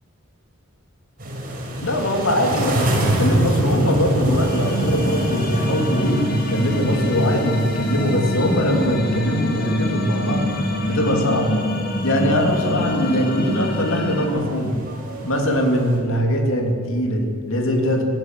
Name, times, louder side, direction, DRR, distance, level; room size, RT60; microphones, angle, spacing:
sound 1, 1.2-16.0, right 1 dB, 40° right, 5.4 m, -27 dB
voice 1, 1.8-10.5 10.9-11.6 12.0-14.8 15.2-18.0, equal, 65° left, 2 dB, 3.0 m, -21 dB
sound 2, 4.4-14.3, left 1 dB, 45° left, 2.4 m, -26 dB
17.5 x 15.5 x 9.7 m, 2.3 s
head